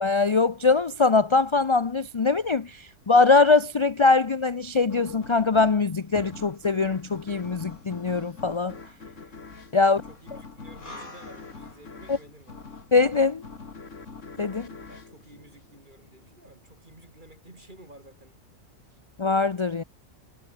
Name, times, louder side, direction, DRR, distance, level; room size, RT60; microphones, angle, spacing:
voice 1, 0.0-8.7 9.7-10.0 12.1-12.2 12.9-13.4 14.4-14.7 19.2-19.8, left 4 dB, 40° left, 0.4 m, -22 dB
sound 1, 4.9-16.2, left 4 dB, 60° left, 2.7 m, -45 dB
sound 2, 6.7-16.1 16.5-16.6, left 2 dB, 90° left, 7.4 m, -53 dB
voice 2, 9.8-12.7 14.8-18.4, right 1 dB, 35° right, 6.0 m, -51 dB
omnidirectional pair, 1.4 m